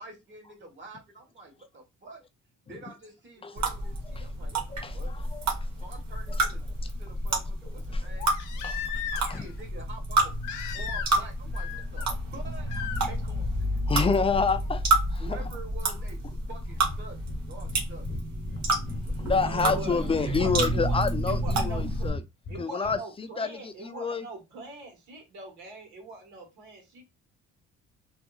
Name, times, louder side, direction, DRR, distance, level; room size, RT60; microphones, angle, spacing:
voice 1, 0.0-2.2 2.6-5.1 5.8-6.7 7.0-8.3 8.9-10.3 10.7-13.5 13.7-13.8 15.2-16.2 16.5-17.2 17.4-18.1 19.6-20.4, right 2 dB, 40° right, 1.3 m, -47 dB
sound 1, 3.6-22.1, right 2 dB, 65° right, 1.0 m, -29 dB
Crying sobbing, 5.5-5.6 8.2-9.5 10.4-11.3 11.5-12.1 12.7-13.0 14.6-14.7, left 8 dB, 85° left, 0.5 m, -36 dB
voice 2, 13.9-14.8 15.1-15.4 19.2-22.2 22.6-24.2, left 5 dB, 20° left, 0.3 m, -28 dB
Breathing, 16.8-17.0 17.2-17.4 17.6-17.8 18.0-19.4 19.7-20.6 20.9-21.8 22.0-23.0, left 3 dB, 35° left, 0.9 m, -39 dB
voice 3, 19.3-21.0 21.2-22.1 22.5-27.0, right 3 dB, 90° right, 1.5 m, -42 dB
2.7 x 2.5 x 2.3 m
cardioid pair, 90°, 30 cm